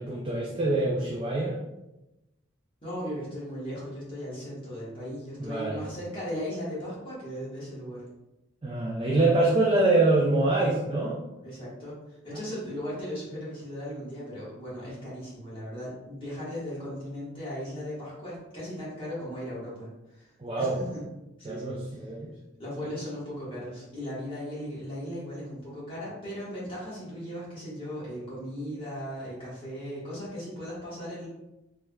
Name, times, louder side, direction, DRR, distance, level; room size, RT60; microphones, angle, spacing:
voice 1, 0.0-1.6 5.4-5.8 8.6-11.2 20.4-20.8 21.4-22.3, right 2 dB, 25° right, -3 dB, 0.3 m, -25 dB
voice 2, 2.8-8.0 11.4-20.3 20.6-21.0 21.4-21.8 22.6-31.3, equal, 25° left, -9 dB, 1.3 m, -37 dB
3.3 x 3.2 x 2.2 m, 0.97 s
head